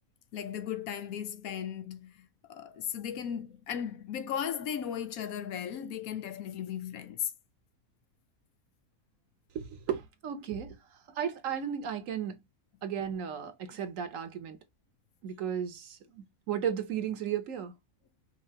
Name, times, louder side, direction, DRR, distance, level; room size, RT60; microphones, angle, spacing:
voice 1, 0.3-2.2 2.5-7.3, left 9 dB, 85° left, 1.2 m, -36 dB
voice 2, 9.5-10.8 11.2-12.4 12.8-14.6 15.2-17.7, right 8 dB, 70° right, 1.2 m, -34 dB
5.5 x 2.6 x 2.8 m
omnidirectional pair, 1.4 m